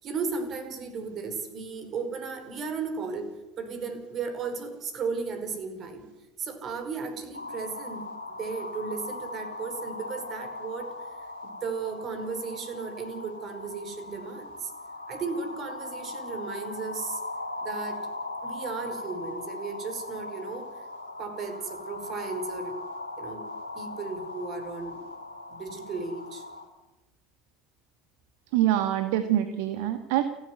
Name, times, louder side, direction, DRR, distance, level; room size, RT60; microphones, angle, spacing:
voice 1, 0.0-6.1 6.4-8.1 8.4-10.9 11.6-14.7 15.1-17.2 17.6-18.1 18.4-20.8 21.2-22.7 23.2-23.5 23.7-25.0 25.5-26.5, right 5 dB, 40° right, 8 dB, 5.1 m, -35 dB
sound 1, 7.3-26.6, left 2 dB, 90° left, 3.1 m, -39 dB
voice 2, 28.5-30.2, right 12 dB, 60° right, 10 dB, 1.5 m, -25 dB
29.5 x 12.0 x 9.6 m, 1.0 s
figure-of-eight pair, 70°, 0 cm